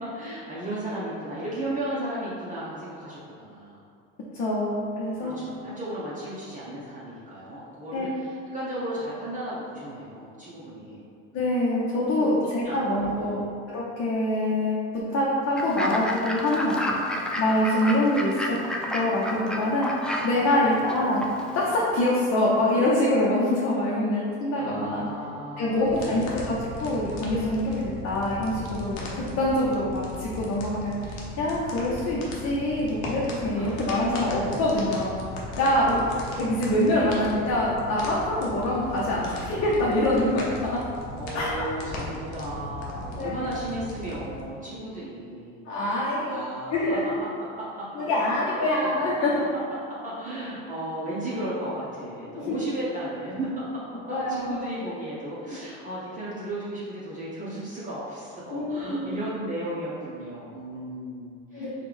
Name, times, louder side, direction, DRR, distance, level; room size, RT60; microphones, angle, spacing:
voice 1, 0.0-3.8 5.2-11.0 12.2-12.3 12.6-13.4 20.5-20.8 24.5-26.5 33.5-34.0 36.9-37.1 41.2-45.6 46.2-47.0 47.6-47.9 48.6-48.9 49.2-49.3 50.0-53.8 54.3-61.8, right 1 dB, 25° right, -8 dB, 0.8 m, -35 dB
voice 2, 4.3-5.4 7.9-8.1 11.3-13.4 13.7-18.6 18.9-19.9 20.2-21.3 21.5-25.1 25.6-35.1 35.6-36.0 36.4-40.8 41.3-41.6 43.2-43.5 45.7-46.4 46.7-47.1 47.9-49.5 52.4-52.6 54.1-54.6 58.5-59.2 61.5-61.8, left 1 dB, 50° left, -6 dB, 0.8 m, -25 dB
Fowl / Bird, 15.6-21.8, equal, 5° left, 0.3 m, -32 dB
sound 1, 25.8-44.4, left 2 dB, 85° left, 0.8 m, -37 dB
4.2 x 2.4 x 3.4 m, 2.3 s
supercardioid pair, 90°, 31 cm